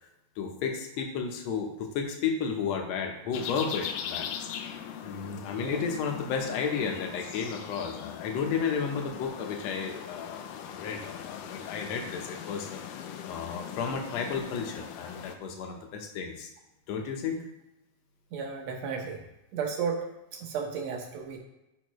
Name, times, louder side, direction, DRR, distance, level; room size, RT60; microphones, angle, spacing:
voice 1, 0.4-4.3 5.0-10.4 10.7-12.8 13.3-16.5 16.9-17.4, left 6 dB, 65° left, 3 dB, 1.8 m, -32 dB
sound 1, 3.3-15.4, left 9 dB, 85° left, 2.2 m, -40 dB
voice 2, 18.3-19.2 19.5-20.1 20.3-21.4, right 6 dB, 65° right, 2 dB, 1.9 m, -33 dB
11.0 x 5.5 x 3.1 m, 0.95 s
omnidirectional pair, 3.8 m